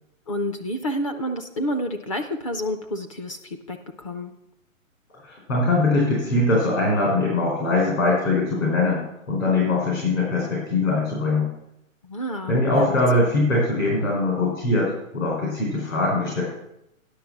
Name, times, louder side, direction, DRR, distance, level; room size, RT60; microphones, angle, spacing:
voice 1, 0.3-4.3 12.0-13.3, equal, 25° left, 6 dB, 0.5 m, -29 dB
voice 2, 5.2-9.0 9.3-11.5 12.5-16.4, left 2 dB, 75° left, -3 dB, 4.3 m, -22 dB
10.5 x 6.3 x 7.1 m, 0.83 s
hypercardioid pair, 145°, 41 cm